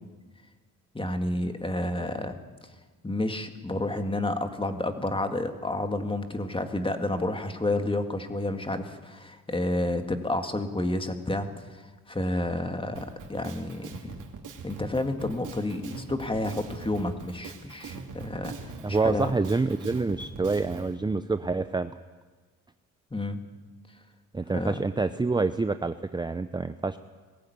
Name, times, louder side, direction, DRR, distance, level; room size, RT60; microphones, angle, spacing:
voice 1, 0.9-2.4 3.0-11.8 12.1-14.2 14.6-19.3 23.1-23.4 24.5-24.8, left 1 dB, 15° left, 7 dB, 2.0 m, -30 dB
Drum kit, 12.9-20.9, right 5 dB, 70° right, 3.0 m, -42 dB
voice 2, 18.8-21.9 24.3-27.0, right 3 dB, 15° right, 11 dB, 0.6 m, -27 dB
21.0 x 15.0 x 9.5 m, 1.4 s
cardioid pair, 90°, 32 cm